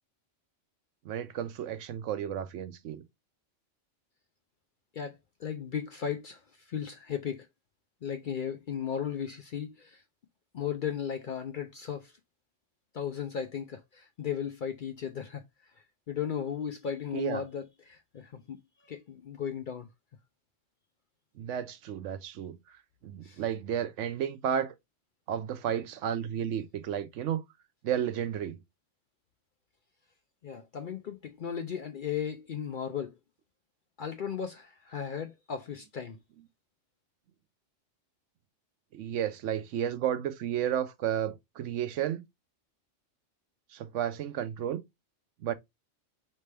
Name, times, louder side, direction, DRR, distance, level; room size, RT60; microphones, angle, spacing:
voice 1, 1.0-3.0 17.1-17.4 21.4-22.6 23.0-24.7 25.3-27.4 27.8-28.6 38.9-42.2 43.7-44.8 45.4-45.5, right 9 dB, 80° right, 0.9 m, -32 dB
voice 2, 4.9-7.5 8.0-10.0 10.5-12.1 12.9-15.4 16.1-18.6 18.9-19.9 23.2-23.4 30.4-33.2 34.0-36.2, left 8 dB, 60° left, 0.5 m, -36 dB
4.3 x 3.3 x 3.3 m
omnidirectional pair, 1.3 m